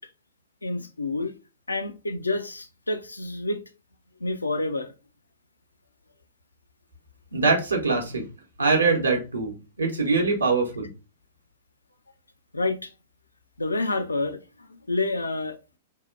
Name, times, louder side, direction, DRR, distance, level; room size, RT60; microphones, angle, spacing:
voice 1, 0.6-1.3 1.7-3.6 4.2-4.9 12.5-12.9 13.6-15.8, left 2 dB, 80° left, 0.4 m, -28 dB
voice 2, 7.3-8.2 8.6-10.9, right 4 dB, 75° right, 0.7 m, -23 dB
2.8 x 2.1 x 2.3 m
figure-of-eight pair, 105°, 0 cm